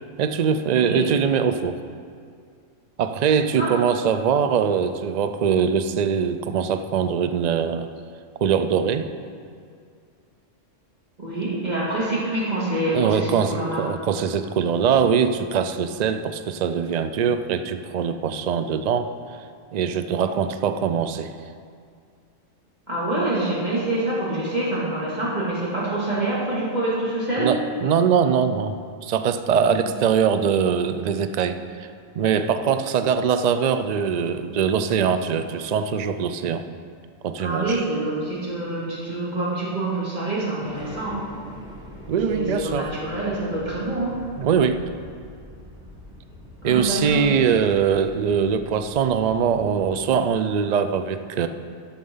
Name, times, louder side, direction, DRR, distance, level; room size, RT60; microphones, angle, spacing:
voice 1, 0.2-1.8 3.0-7.9 8.4-9.1 12.9-19.1 19.7-21.3 27.4-28.8 29.0-31.9 32.2-36.6 37.2-37.8 42.1-42.9 44.4-44.8 46.6-51.5, right 7 dB, 90° right, 9 dB, 0.3 m, -22 dB
voice 2, 11.2-13.8 22.9-27.5 29.8-29.9 37.4-41.3 42.3-44.2 46.6-47.3, right 2 dB, 35° right, -7 dB, 2.7 m, -26 dB
sound 1, 40.6-50.1, left 1 dB, 5° right, 1.8 m, -43 dB
11.0 x 7.1 x 5.5 m, 2.3 s
omnidirectional pair, 1.3 m